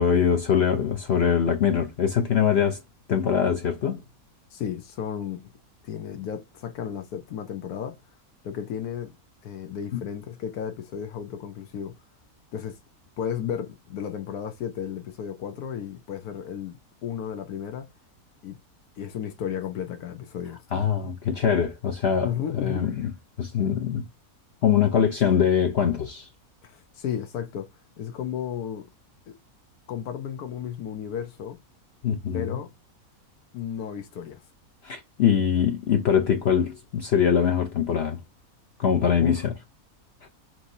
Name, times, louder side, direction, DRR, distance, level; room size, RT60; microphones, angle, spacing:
voice 1, 0.0-2.8 3.1-4.0 9.9-10.0 20.7-23.1 23.4-24.0 24.6-26.3 32.0-32.6 34.8-38.2 38.8-39.5, left 8 dB, 60° left, 0.7 m, -23 dB
voice 2, 4.5-5.4 5.8-8.0 8.4-9.1 9.4-11.9 12.5-12.8 13.2-17.9 18.4-18.6 19.0-20.6 22.2-22.8 26.6-27.7 28.0-28.9 29.3-29.4 29.9-31.6 32.3-32.7 33.5-34.4 39.2-39.4, left 8 dB, 85° left, 1.2 m, -33 dB
6.0 x 2.7 x 2.6 m
omnidirectional pair, 1.6 m